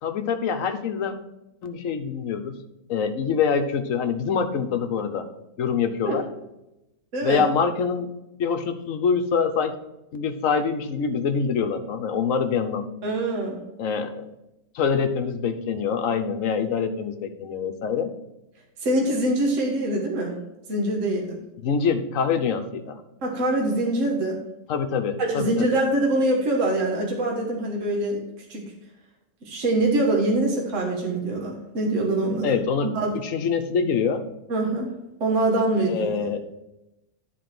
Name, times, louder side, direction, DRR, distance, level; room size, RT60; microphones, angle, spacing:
voice 1, 0.0-1.1 1.6-2.6 2.9-5.3 5.6-6.2 7.2-8.1 8.4-9.8 10.1-12.8 13.8-14.3 14.7-18.1 21.6-23.0 24.7-25.8 32.4-32.9 33.1-34.2 35.9-36.4, left 6 dB, 60° left, 8 dB, 1.2 m, -25 dB
voice 2, 13.0-13.6 18.8-20.3 20.7-21.4 23.2-24.4 25.3-28.2 28.5-28.6 29.4-32.6 32.9-33.1 34.5-34.9 35.2-36.1, right 1 dB, 55° right, -1 dB, 1.8 m, -24 dB
11.0 x 4.2 x 6.0 m, 0.92 s
omnidirectional pair, 1.6 m